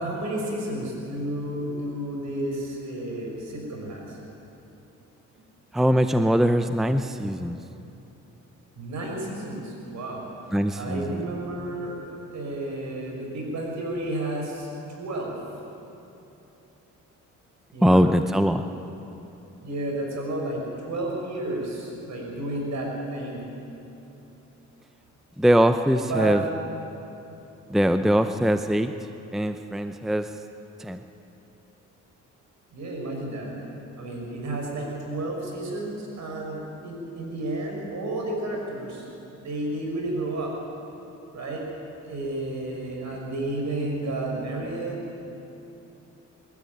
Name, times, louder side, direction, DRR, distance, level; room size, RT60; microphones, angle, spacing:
voice 1, 0.0-4.2 8.8-10.2 10.7-12.0 12.2-15.4 17.7-18.1 19.5-23.5 26.0-26.4 27.2-27.3 32.7-33.5 34.0-40.5 41.3-41.6 42.0-45.3, right 1 dB, 65° right, 0 dB, 6.0 m, -32 dB
voice 2, 5.7-7.6 10.5-11.2 17.8-18.6 25.4-26.5 27.7-28.9 29.3-30.3 30.8-31.0, equal, ahead, 9 dB, 0.7 m, -22 dB
22.0 x 13.0 x 9.4 m, 3.0 s
cardioid pair, 90°, 30 cm